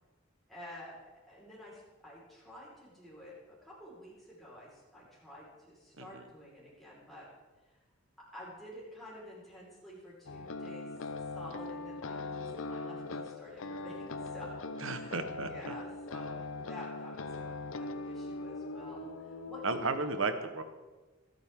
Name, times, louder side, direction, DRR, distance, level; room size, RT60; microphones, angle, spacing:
voice 1, 0.5-1.0 1.3-7.3 7.6-7.8 8.3-10.9 11.3-19.9, left 1 dB, ahead, -7 dB, 4.8 m, -50 dB
voice 2, 6.0-6.3 14.8-15.7 19.6-20.6, right 3 dB, 80° right, 8 dB, 1.3 m, -34 dB
sound 1, 10.3-20.0, left 3 dB, 75° left, 0.7 m, -41 dB
25.0 x 9.2 x 3.8 m, 1.2 s
head